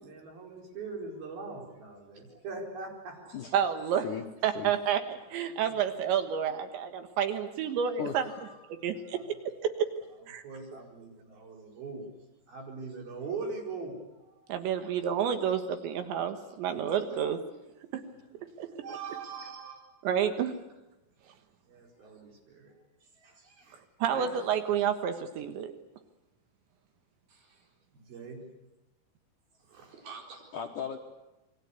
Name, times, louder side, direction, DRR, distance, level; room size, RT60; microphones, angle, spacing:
voice 1, 0.0-3.6 5.5-5.8 8.7-9.3 10.4-12.1 12.5-14.9 15.5-15.6 17.1-17.2 18.5-19.9 21.7-22.7 23.2-23.8 24.1-24.4 27.3-28.4 29.6-30.5, right 4 dB, 55° right, 1 dB, 6.3 m, -43 dB
voice 2, 3.5-4.1 4.4-8.3 8.8-9.2 9.8-9.9 10.3-10.4 14.5-17.4 17.9-18.0 18.6-18.7 20.0-20.5 24.0-25.7, right 8 dB, 75° right, 8 dB, 3.7 m, -29 dB
voice 3, 8.0-8.6 16.8-16.9 18.1-18.5 30.5-31.0, left 7 dB, 65° left, 3 dB, 2.1 m, -38 dB
28.5 x 22.5 x 8.4 m, 1.0 s
omnidirectional pair, 5.3 m